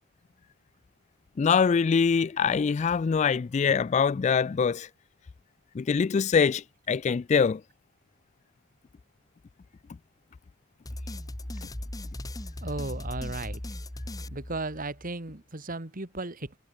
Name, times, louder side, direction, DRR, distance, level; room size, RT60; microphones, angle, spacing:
voice 1, 1.4-4.9 5.7-7.6, left 6 dB, 35° left, 0.3 m, -24 dB
sound 1, 10.9-15.1, left 1 dB, 20° left, 1.0 m, -38 dB
voice 2, 12.6-13.6 14.3-16.6, right 2 dB, 40° right, 2.1 m, -35 dB
head